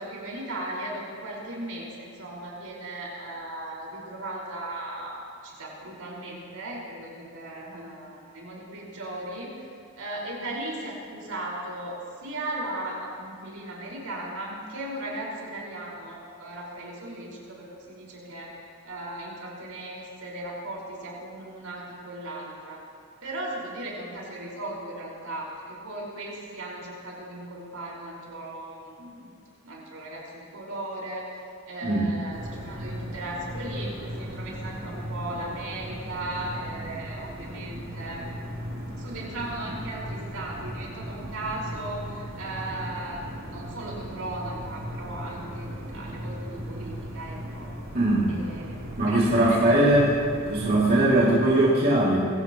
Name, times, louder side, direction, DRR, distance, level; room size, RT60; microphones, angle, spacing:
voice 1, 0.0-9.5 10.0-18.6 18.8-22.8 23.2-29.3 29.6-31.4 31.7-38.2 39.0-47.7 48.3-48.7 49.1-49.7, right 1 dB, 80° right, -4 dB, 5.1 m, -37 dB
voice 2, 31.8-32.1 47.9-48.4 49.0-50.1 50.5-52.2, right 1 dB, 45° right, -8 dB, 2.7 m, -20 dB
sound 1, 32.3-51.4, equal, 65° right, 3.6 m, -37 dB
23.5 x 17.0 x 3.1 m, 2.3 s
head